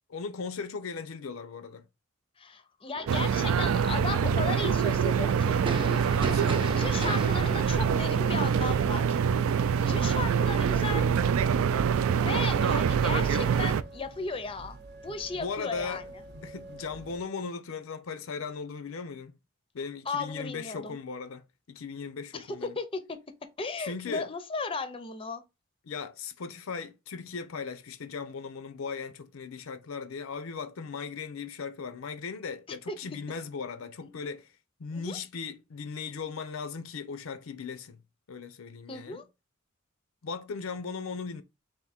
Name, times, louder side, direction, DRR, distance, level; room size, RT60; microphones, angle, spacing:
voice 1, 0.1-1.9 6.2-7.3 9.8-10.1 15.3-16.1 16.4-19.4 19.7-22.8 23.8-24.3 25.8-34.5 34.8-38.0 38.3-39.2 40.2-41.4, left 5 dB, 85° left, 0.5 m, -38 dB
voice 2, 2.4-5.6 6.7-9.2 9.8-11.1 12.2-14.8 15.0-16.0 20.1-21.0 22.3-23.2 23.6-25.4 32.9-33.0 34.0-34.1 35.0-35.2 38.9-39.2, left 4 dB, 25° left, 0.5 m, -35 dB
sound 1, 2.9-9.4, right 3 dB, 25° right, 0.6 m, -39 dB
sound 2, 3.1-13.8, right 7 dB, 90° right, 0.3 m, -25 dB
sound 3, 11.9-17.2, right 2 dB, 55° right, 0.8 m, -47 dB
3.6 x 2.6 x 4.2 m
head